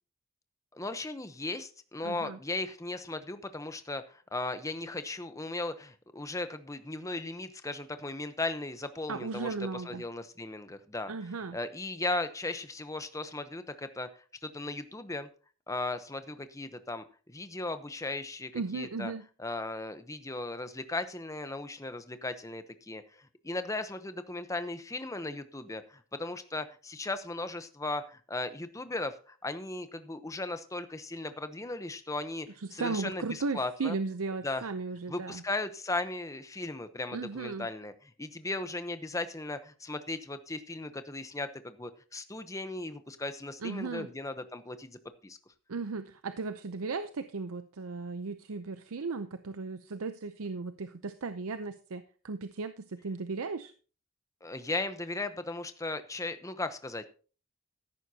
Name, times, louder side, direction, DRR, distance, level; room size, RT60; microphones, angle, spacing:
voice 1, 0.7-11.1 11.5-14.1 14.4-15.3 15.7-19.1 19.4-34.0 34.4-34.7 35.1-45.4 54.4-57.1, left 2 dB, 15° left, 10 dB, 0.8 m, -37 dB
voice 2, 2.0-2.4 9.1-10.0 11.1-11.6 18.5-19.2 32.6-35.4 37.1-37.7 43.6-44.1 45.7-53.7, right 4 dB, 80° right, 10 dB, 0.6 m, -36 dB
14.0 x 11.0 x 2.8 m, 0.38 s
head